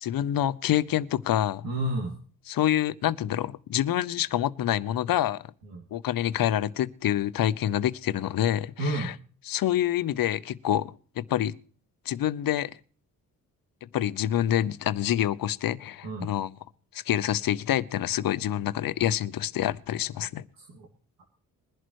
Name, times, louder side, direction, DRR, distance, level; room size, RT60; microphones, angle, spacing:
voice 1, 0.0-1.7 2.5-5.4 5.9-9.1 9.5-11.6 12.1-12.7 13.9-16.5 16.9-20.5, left 11 dB, 70° left, 0.8 m, -27 dB
voice 2, 1.6-2.2 5.6-5.8 8.8-9.1 16.0-16.3 20.6-20.9, right 1 dB, 80° right, 2.7 m, -31 dB
21.5 x 11.0 x 3.1 m
cardioid pair, 85°, 36 cm